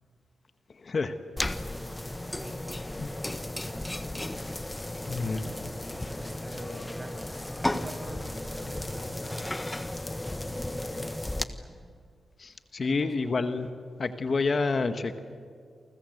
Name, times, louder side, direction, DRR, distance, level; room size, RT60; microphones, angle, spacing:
voice 1, 0.8-1.1 3.0-3.1 5.0-5.4 12.4-13.7 14.0-15.2, left 4 dB, 50° left, 9 dB, 1.5 m, -28 dB
sound 1, 1.4-11.4, left 1 dB, 15° left, 1.4 m, -34 dB
voice 2, 2.2-4.5 4.7-7.1 7.4-9.7 10.4-11.8 12.8-13.4, right 1 dB, 35° right, 5 dB, 6.6 m, -47 dB
29.0 x 24.0 x 8.0 m, 2.1 s
cardioid pair, 70°, 0 cm